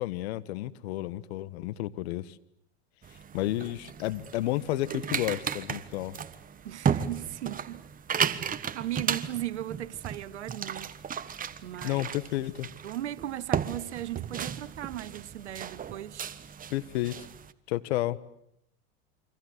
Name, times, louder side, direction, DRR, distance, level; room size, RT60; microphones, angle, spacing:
voice 1, 0.0-2.4 3.3-6.2 11.8-12.7 16.7-17.1 17.7-18.2, left 15 dB, 70° left, 1.5 m, -31 dB
sound 1, 3.0-17.5, right 7 dB, 25° right, 1.3 m, -35 dB
voice 2, 6.6-7.9 8.1-10.9 11.6-12.0 12.8-16.3, right 13 dB, 90° right, 1.2 m, -37 dB
29.0 x 25.0 x 8.1 m
hypercardioid pair, 105°, 33 cm